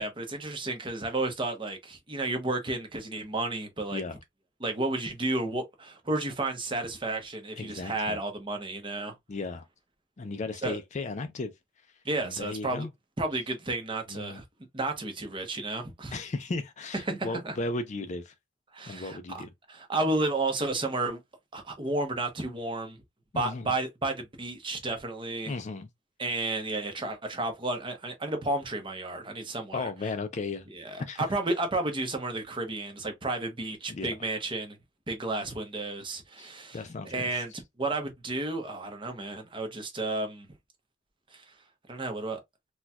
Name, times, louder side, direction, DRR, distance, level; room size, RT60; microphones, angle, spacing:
voice 1, 0.0-4.0 4.6-9.1 10.6-10.8 12.0-12.9 13.2-14.4 14.7-16.1 16.9-17.6 18.7-21.2 21.5-23.0 23.3-25.5 26.2-29.9 30.7-34.8 35.1-40.5 41.3-41.4 41.9-42.4, right 2 dB, 25° right, 0.7 m, -32 dB
voice 2, 7.6-8.2 9.3-9.7 10.2-11.5 12.2-12.9 14.1-14.4 16.1-18.3 18.9-19.5 23.3-23.7 25.5-25.9 29.7-30.7 31.0-31.2 33.9-34.1 36.4-37.4, left 3 dB, 35° left, 0.4 m, -35 dB
4.2 x 2.2 x 2.3 m
head